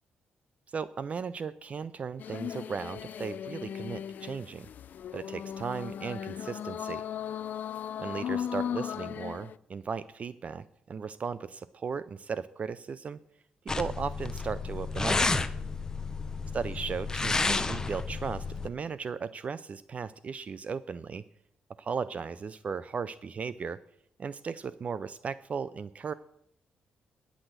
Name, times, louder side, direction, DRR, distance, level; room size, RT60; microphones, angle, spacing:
voice 1, 0.7-4.7 5.1-7.0 8.0-13.2 13.8-15.5 16.5-21.2 21.7-23.8 24.2-26.1, right 6 dB, 45° right, 16 dB, 0.4 m, -36 dB
sound 1, 2.2-9.6, left 9 dB, 65° left, 0.3 m, -37 dB
sound 2, 13.7-18.7, left 3 dB, 20° left, 0.7 m, -31 dB
9.9 x 6.1 x 7.9 m, 0.73 s
cardioid pair, 85°, 3 cm